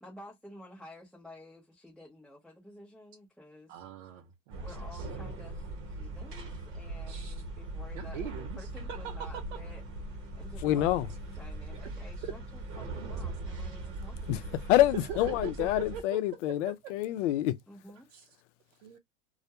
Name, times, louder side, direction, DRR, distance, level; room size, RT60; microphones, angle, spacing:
voice 1, 0.0-3.7 4.6-14.6 15.2-15.3 17.7-18.1, left 1 dB, ahead, 0.6 m, -51 dB
voice 2, 3.7-5.1 7.0-7.4 7.9-9.6 11.7-11.9 12.2-12.3 13.0-13.3 15.1-16.2 16.8-16.9 18.1-18.4 18.7-19.0, right 8 dB, 65° right, 0.7 m, -43 dB
sound 1, 4.5-16.0, right 2 dB, 30° right, 1.1 m, -40 dB
voice 3, 10.6-11.1 14.3-14.4 14.7-17.6, left 14 dB, 65° left, 0.6 m, -27 dB
2.3 x 2.1 x 2.8 m
supercardioid pair, 130°, 39 cm